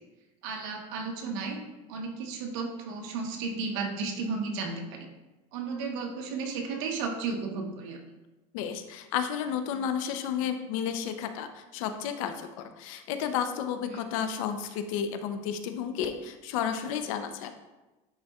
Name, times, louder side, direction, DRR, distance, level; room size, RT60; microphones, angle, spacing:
voice 1, 0.4-1.6 1.9-5.1 5.5-8.0 13.9-14.0, right 4 dB, 70° right, 3 dB, 1.1 m, -33 dB
voice 2, 8.5-17.5, left 8 dB, 75° left, 8 dB, 0.7 m, -32 dB
9.9 x 4.0 x 2.4 m, 1.1 s
supercardioid pair, 130°, 17 cm